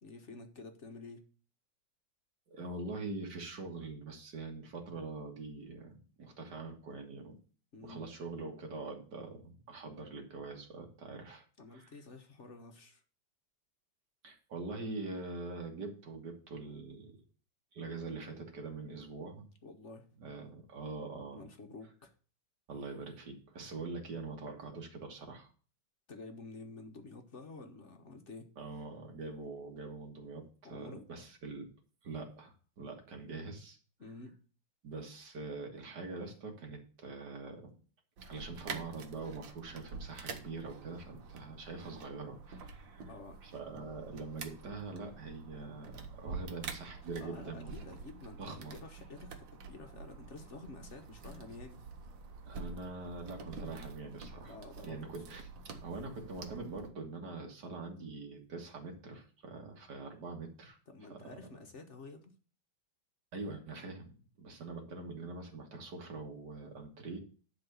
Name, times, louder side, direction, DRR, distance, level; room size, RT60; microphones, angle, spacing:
voice 1, 0.0-1.3 7.7-8.1 11.6-13.0 19.6-20.1 21.3-22.1 26.1-28.5 30.6-31.0 34.0-34.4 43.1-43.4 47.2-51.8 54.4-55.0 60.9-62.3, left 3 dB, 45° left, 5 dB, 1.2 m, -50 dB
voice 2, 2.5-7.3 7.8-11.4 11.7-11.9 14.2-17.2 17.7-19.4 20.2-21.5 22.7-25.5 28.6-31.7 32.0-33.8 34.8-37.7 38.2-43.1 43.4-48.0 48.4-48.8 52.5-54.6 54.8-55.5 55.8-60.8 61.1-61.3 63.3-67.2, right 3 dB, 60° right, 3 dB, 2.4 m, -44 dB
sound 1, 38.2-56.9, right 4 dB, 75° right, 1.9 m, -47 dB
11.0 x 4.0 x 6.9 m, 0.40 s
omnidirectional pair, 2.1 m